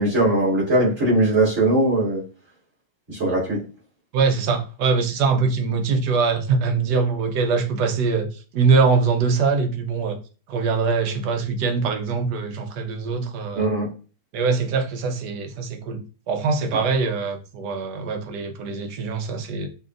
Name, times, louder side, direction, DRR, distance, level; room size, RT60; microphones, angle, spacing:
voice 1, 0.0-2.2 3.1-3.6 13.5-13.9, right 2 dB, 45° right, 3.0 m, -20 dB
voice 2, 4.1-8.3 8.5-10.2 10.5-13.7 14.3-19.7, right 4 dB, 75° right, 1.3 m, -23 dB
6.7 x 2.7 x 2.5 m
omnidirectional pair, 1.8 m